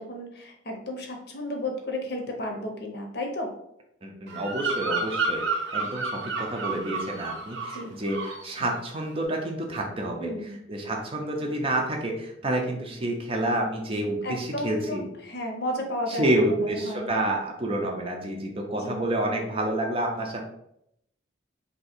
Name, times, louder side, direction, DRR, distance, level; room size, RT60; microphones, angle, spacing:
voice 1, 0.0-3.5 7.7-7.9 10.2-10.6 14.2-17.1 18.7-19.0, left 1 dB, 55° left, 2 dB, 0.7 m, -33 dB
voice 2, 4.0-5.4 5.7-15.0 16.1-20.4, right 1 dB, 30° right, 1 dB, 0.5 m, -29 dB
Bird vocalization bird call bird song, 4.3-7.8 8.1-8.5, right 3 dB, 85° right, 0.7 m, -30 dB
2.8 x 2.6 x 4.2 m, 0.76 s
head